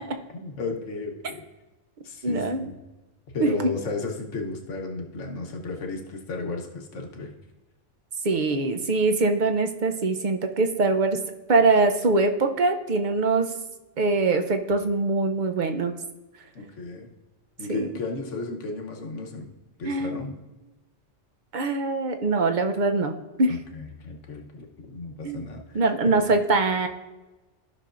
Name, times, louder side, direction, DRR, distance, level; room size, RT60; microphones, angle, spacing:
voice 1, 0.3-1.4 2.0-2.8 3.3-7.3 16.5-17.1 17.6-19.5 19.8-20.3 23.5-26.3, left 3 dB, 90° left, 2 dB, 1.3 m, -34 dB
voice 2, 2.2-2.6 3.4-3.7 8.2-11.2 11.5-13.5 14.0-15.9 17.7-17.9 19.9-20.3 21.5-23.6 25.2-25.5 25.7-26.9, right 3 dB, 50° right, 6 dB, 0.7 m, -23 dB
14.5 x 5.9 x 2.5 m, 1.1 s
omnidirectional pair, 1.2 m